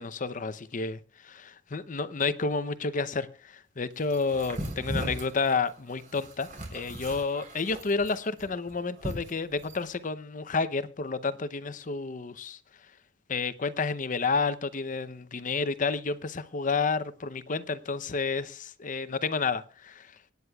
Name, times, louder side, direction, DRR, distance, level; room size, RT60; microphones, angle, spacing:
voice 1, 0.0-12.6 13.3-20.1, left 4 dB, 45° left, 0.7 m, -30 dB
sound 1, 4.1-9.9, right 1 dB, 45° right, 3.7 m, -38 dB
26.0 x 9.4 x 2.3 m
head